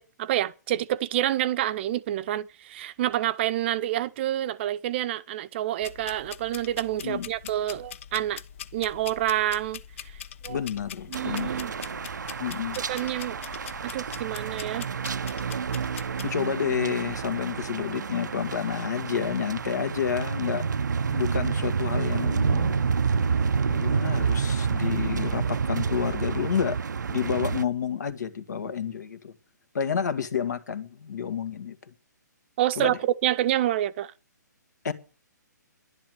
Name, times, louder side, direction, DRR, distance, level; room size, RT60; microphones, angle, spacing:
voice 1, 0.0-8.4 8.7-9.8 10.4-10.6 11.1-11.7 12.9-13.4 13.8-14.9 32.6-34.1, right 13 dB, 35° right, 0.7 m, -28 dB
sound 1, 5.8-16.3, left 9 dB, 45° left, 0.7 m, -43 dB
voice 2, 10.5-11.6 12.4-12.8 16.2-20.7 21.1-22.8 23.6-26.8 27.1-29.3 29.7-31.8 32.8-33.0 34.8-34.9, left 7 dB, 65° left, 1.9 m, -29 dB
sound 2, 11.1-27.6, right 6 dB, 70° right, 0.6 m, -29 dB
11.5 x 10.5 x 7.7 m
figure-of-eight pair, 135°, 10 cm